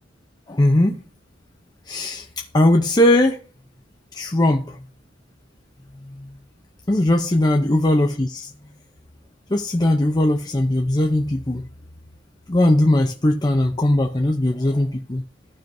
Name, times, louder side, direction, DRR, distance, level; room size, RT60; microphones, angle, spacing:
voice 1, 0.5-1.0 1.9-3.4 4.1-4.8 6.1-6.3 6.9-8.5 9.5-11.6 12.5-15.2, left 1 dB, 20° left, 0.6 m, -19 dB
14.5 x 5.0 x 2.6 m
head